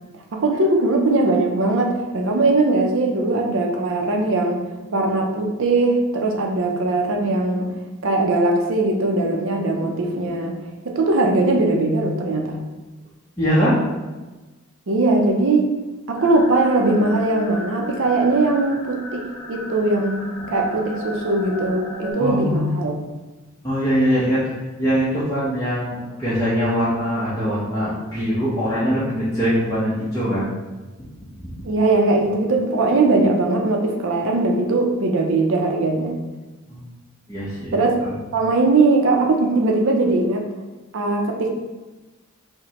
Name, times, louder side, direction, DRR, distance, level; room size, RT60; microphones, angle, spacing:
voice 1, 0.3-4.6 4.9-7.7 8.0-10.6 10.8-12.6 14.9-15.7 16.1-22.9 31.6-36.2 37.7-38.0 38.3-40.4 40.9-41.5, right 2 dB, 60° right, 1 dB, 0.5 m, -20 dB
voice 2, 13.4-13.8 22.2-22.8 23.6-24.4 24.8-30.5 36.7-36.8 37.3-38.1, equal, 15° left, -11 dB, 0.7 m, -22 dB
sound 1, 16.2-22.1, left 2 dB, 75° left, 0.7 m, -35 dB
4.8 x 2.1 x 2.9 m, 1.2 s
head